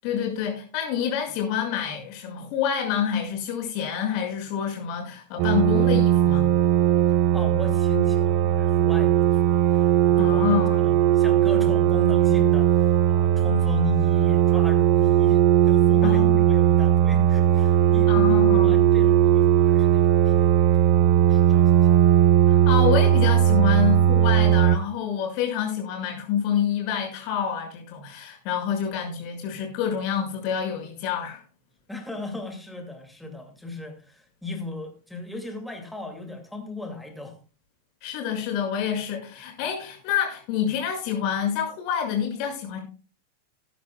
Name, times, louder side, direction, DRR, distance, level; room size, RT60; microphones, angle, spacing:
voice 1, 0.0-6.5 10.2-10.9 16.0-16.4 18.1-18.8 22.5-31.4 38.0-42.8, left 8 dB, 45° left, 1 dB, 5.9 m, -27 dB
sound 1, 5.4-24.8, right 10 dB, 40° right, 0.7 m, -18 dB
voice 2, 7.3-10.5 10.8-18.4 18.6-22.1 31.9-37.4, left 3 dB, 5° left, 3 dB, 2.3 m, -36 dB
20.0 x 10.5 x 2.3 m, 0.35 s
figure-of-eight pair, 90°, 0 cm